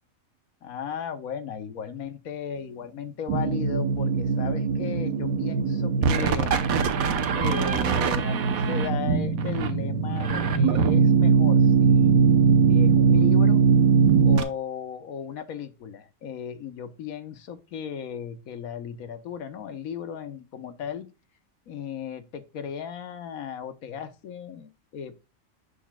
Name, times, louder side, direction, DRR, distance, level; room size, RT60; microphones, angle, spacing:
voice 1, 0.6-6.5 7.2-13.6 14.2-21.1 21.7-25.2, left 7 dB, 80° left, 1.3 m, -36 dB
sound 1, 3.3-14.4, right 5 dB, 75° right, 1.3 m, -21 dB
6.7 x 6.5 x 2.2 m
omnidirectional pair, 1.5 m